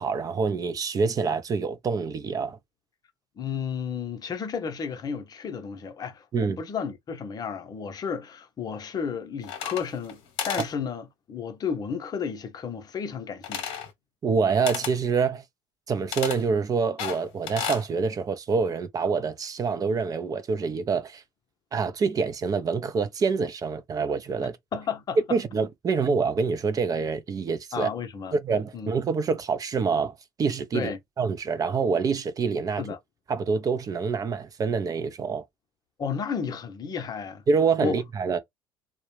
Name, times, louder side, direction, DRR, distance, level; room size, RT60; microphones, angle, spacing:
voice 1, 0.0-2.6 6.3-6.6 14.2-15.4 15.9-21.2 21.7-24.6 25.3-27.9 28.3-30.9 31.2-32.8 33.3-35.4 37.5-38.4, right 5 dB, 35° right, 0.5 m, -26 dB
voice 2, 3.4-13.8 24.4-25.4 27.7-28.3 28.7-28.9 30.7-31.0 32.8-33.0 36.0-37.4 37.8-38.0, left 6 dB, 35° left, 0.7 m, -32 dB
sound 1, 9.4-10.1 10.4-10.7 13.4-13.9 14.7-15.0 16.1-16.4 17.0-17.9, left 8 dB, 60° left, 0.9 m, -32 dB
2.3 x 2.1 x 3.1 m
hypercardioid pair, 75°, 11 cm